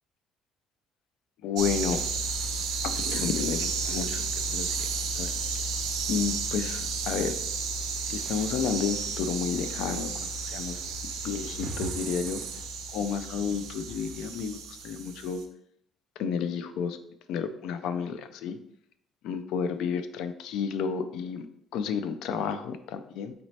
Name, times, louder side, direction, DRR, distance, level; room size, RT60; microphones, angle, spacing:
voice 1, 1.4-2.0 2.8-4.9 5.2-5.3 6.1-7.4 8.1-10.1 10.4-10.8 11.2-12.4 12.9-15.4 16.2-17.0 17.3-18.6 19.2-21.5 21.7-23.3, left 6 dB, 80° left, 11 dB, 0.3 m, -31 dB
sound 1, 1.6-15.4, right 4 dB, 85° right, 0.4 m, -32 dB
4.0 x 2.6 x 3.2 m, 0.72 s
cardioid pair, 130°, 0 cm